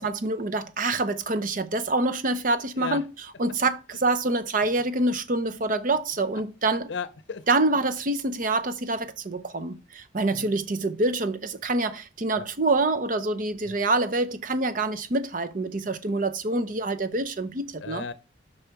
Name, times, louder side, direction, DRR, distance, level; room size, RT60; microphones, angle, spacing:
voice 1, 0.0-3.0 3.4-6.9 7.5-18.0, right 2 dB, 45° right, 0.6 m, -26 dB
voice 2, 6.9-7.5 10.3-10.6 12.3-12.5 13.7-13.8 17.8-18.1, left 5 dB, 80° left, 0.6 m, -35 dB
6.6 x 5.6 x 4.7 m
head